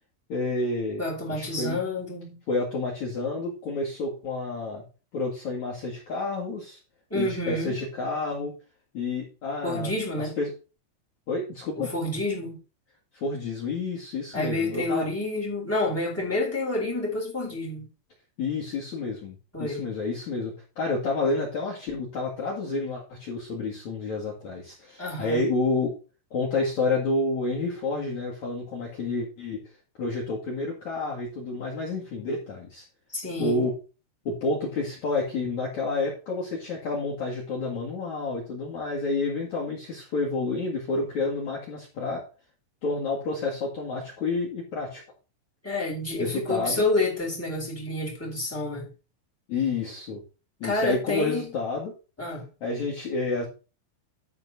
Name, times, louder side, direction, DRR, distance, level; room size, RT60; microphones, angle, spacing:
voice 1, 0.3-1.0 1.3-1.8 2.5-4.8 5.1-6.8 7.1-8.5 8.9-10.5 11.3-11.9 13.1-15.0 18.4-25.9 26.3-29.6 30.0-32.8 33.4-33.7 34.2-42.2 42.8-45.0 46.2-46.8 49.5-50.2 50.6-51.9 52.6-53.5, left 3 dB, 50° left, 2.5 m, -29 dB
voice 2, 1.0-2.4 7.1-7.8 9.6-10.4 11.8-12.6 14.3-17.9 19.5-19.8 25.0-25.4 33.1-33.6 45.6-48.9 50.6-51.5 52.2-52.4, left 2 dB, 5° left, 2.9 m, -29 dB
12.0 x 4.5 x 5.7 m
omnidirectional pair, 5.7 m